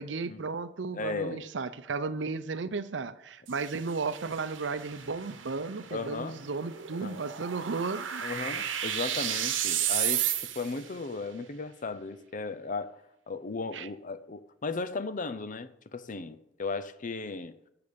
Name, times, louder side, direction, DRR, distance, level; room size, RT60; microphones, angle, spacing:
voice 1, 0.0-8.2 13.7-13.9, right 4 dB, 70° right, 0.7 m, -34 dB
voice 2, 0.9-1.5 5.9-6.4 7.0-7.2 8.2-13.0 13.3-17.6, left 3 dB, 45° left, 0.7 m, -36 dB
sound 1, 3.5-10.9, right 10 dB, 90° right, 1.0 m, -33 dB
13.0 x 6.9 x 5.2 m
head